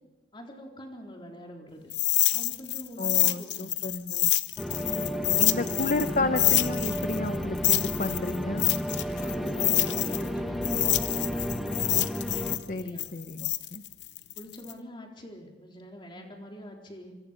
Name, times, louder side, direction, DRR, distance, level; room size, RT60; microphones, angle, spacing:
voice 1, 0.3-1.9 2.3-3.7 4.8-5.6 9.2-11.6 12.7-13.1 14.4-17.1, equal, 30° left, 0 dB, 4.0 m, -45 dB
sound 1, 1.9-6.1 6.4-10.3 10.6-14.7, left 16 dB, 75° left, 0.9 m, -27 dB
voice 2, 3.0-4.3 5.4-8.7 12.7-13.8, left 2 dB, 45° left, 9 dB, 0.8 m, -32 dB
sound 2, 4.6-12.6, equal, ahead, 1.6 m, -32 dB
26.0 x 24.5 x 5.3 m, 1.2 s
head